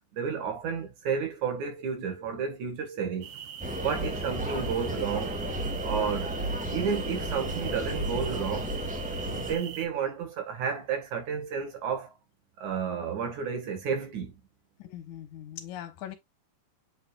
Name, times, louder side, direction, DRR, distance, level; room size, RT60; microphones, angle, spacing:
voice 1, 0.1-3.3 3.8-5.4 5.8-6.4 6.7-8.7 9.2-12.1 12.6-14.4, right 6 dB, 70° right, 3.3 m, -31 dB
sound 1, 3.2-9.9, right 9 dB, 85° right, 2.6 m, -42 dB
sound 2, 3.6-9.5, right 1 dB, 5° right, 1.3 m, -33 dB
voice 2, 3.8-4.1 14.8-16.2, left 11 dB, 75° left, 2.5 m, -41 dB
7.9 x 5.1 x 2.4 m
omnidirectional pair, 3.5 m